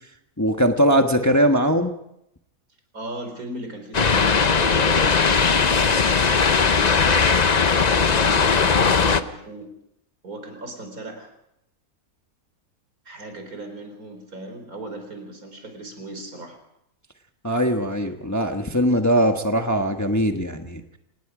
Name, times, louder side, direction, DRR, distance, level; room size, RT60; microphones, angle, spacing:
voice 1, 0.4-1.9 17.4-20.8, equal, 10° left, 4 dB, 1.2 m, -20 dB
voice 2, 2.9-6.1 6.5-7.3 7.7-9.7 10.2-11.3 13.0-16.6, right 2 dB, 70° right, 5 dB, 4.6 m, -37 dB
sound 1, 3.9-9.2, left 5 dB, 35° left, 0.7 m, -18 dB
27.0 x 19.0 x 5.0 m, 0.81 s
omnidirectional pair, 1.6 m